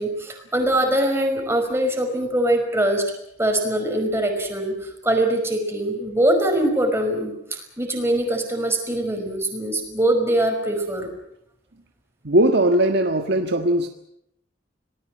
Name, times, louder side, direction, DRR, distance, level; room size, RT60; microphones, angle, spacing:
voice 1, 0.0-3.0 3.4-11.1, right 1 dB, 15° right, 4 dB, 5.3 m, -22 dB
voice 2, 12.2-13.9, right 1 dB, 60° right, 5 dB, 1.6 m, -19 dB
26.5 x 19.5 x 7.7 m, 0.76 s
head